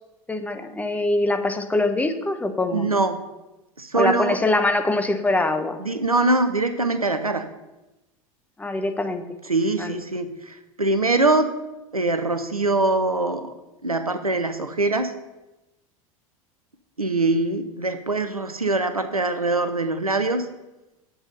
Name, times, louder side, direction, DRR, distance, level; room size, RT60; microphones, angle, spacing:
voice 1, 0.3-2.9 3.9-5.8 8.6-9.2 9.8-10.0, left 2 dB, 10° left, 7 dB, 1.0 m, -23 dB
voice 2, 2.7-3.2 3.8-4.4 5.8-7.5 9.5-11.5 11.9-13.5 13.8-15.1 17.0-20.4, right 2 dB, 90° right, 9 dB, 0.7 m, -23 dB
8.0 x 7.8 x 5.4 m, 1.0 s
figure-of-eight pair, 80°, 18 cm